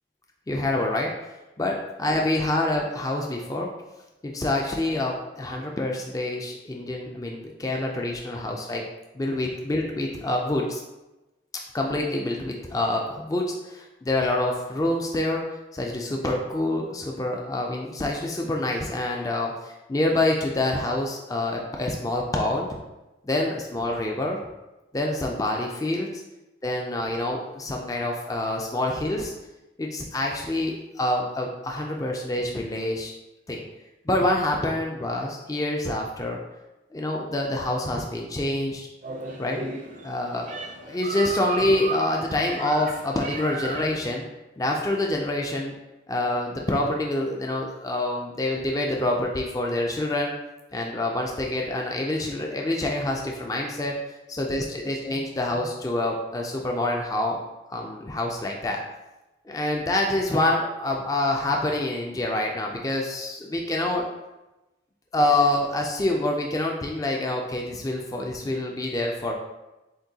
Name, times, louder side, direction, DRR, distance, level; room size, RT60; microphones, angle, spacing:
voice 1, 0.5-3.7 4.2-8.8 9.1-10.8 11.7-15.4 15.7-22.7 23.2-24.4 24.9-26.2 26.6-29.3 29.8-33.1 33.5-33.6 34.1-36.4 36.9-38.9 39.4-39.6 40.0-44.3 44.6-45.7 46.1-50.3 50.7-54.0 54.3-57.4 57.7-58.8 59.5-64.0 65.1-69.3, left 1 dB, 20° left, 0 dB, 0.3 m, -26 dB
sound 1, 39.0-44.0, right 2 dB, 40° right, 0.5 m, -34 dB
7.4 x 2.6 x 2.7 m, 1.0 s
head